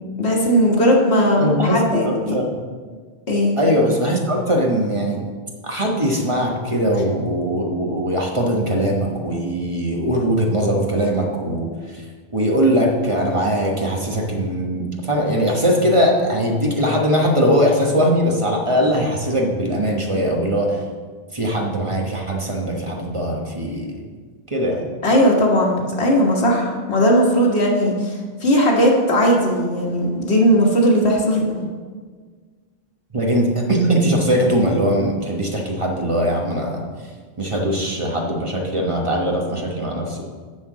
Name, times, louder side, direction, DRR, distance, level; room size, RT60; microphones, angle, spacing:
voice 1, 0.2-2.4 3.3-3.6 25.0-31.6, equal, 90° left, -1 dB, 1.8 m, -17 dB
voice 2, 1.4-2.5 3.6-5.2 5.6-12.0 12.3-20.8 21.3-24.0 24.5-24.8 33.1-36.8 37.4-40.2, equal, 30° right, 0 dB, 1.2 m, -20 dB
6.4 x 5.7 x 7.2 m, 1.5 s
omnidirectional pair, 1.1 m